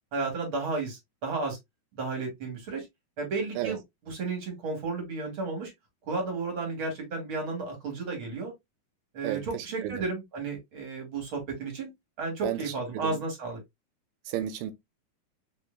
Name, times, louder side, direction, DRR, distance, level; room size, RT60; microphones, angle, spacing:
voice 1, 0.1-1.6 2.0-2.9 3.2-3.8 4.1-5.7 6.1-8.5 9.1-11.9 12.2-13.6, right 3 dB, 40° right, 2.4 m, -33 dB
voice 2, 9.2-10.1 12.4-13.2 14.3-14.7, right 12 dB, 90° right, 2.6 m, -33 dB
4.9 x 4.3 x 2.3 m
omnidirectional pair, 4.2 m